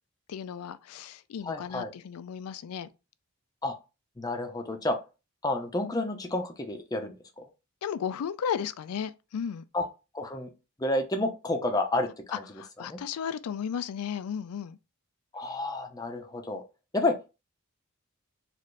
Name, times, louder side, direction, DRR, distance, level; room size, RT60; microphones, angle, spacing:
voice 1, 0.3-2.9 7.8-9.6 12.3-14.8, left 8 dB, 90° left, 0.4 m, -34 dB
voice 2, 1.4-1.9 3.6-3.8 4.2-5.0 5.4-7.4 9.7-9.8 10.1-10.5 10.8-12.4 12.9-13.0 15.3-16.6 16.9-17.3, left 2 dB, 15° left, 0.5 m, -30 dB
4.1 x 2.5 x 3.2 m
head